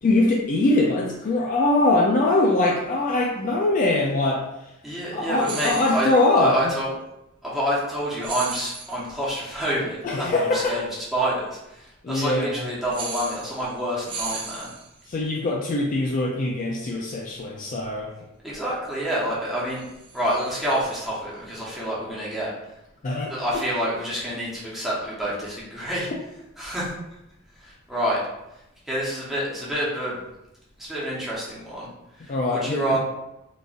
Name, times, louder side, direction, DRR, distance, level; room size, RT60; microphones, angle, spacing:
voice 1, 0.0-4.4 5.1-6.7 10.0-10.8 12.0-12.7 15.1-18.1 23.0-23.3 32.3-32.9, left 2 dB, 40° left, -1 dB, 0.4 m, -22 dB
voice 2, 4.8-6.9 7.4-10.8 11.1-14.7 18.4-19.8 20.1-22.5 23.3-26.1 26.6-26.9 27.6-28.2 28.9-30.1 30.8-31.9 32.2-33.0, right 1 dB, ahead, -8 dB, 0.9 m, -28 dB
sound 1, 5.4-6.3 8.2-9.1 12.9-13.8 14.0-15.1 19.7-21.1, right 4 dB, 25° right, 0.4 m, -36 dB
3.9 x 2.5 x 2.4 m, 0.88 s
head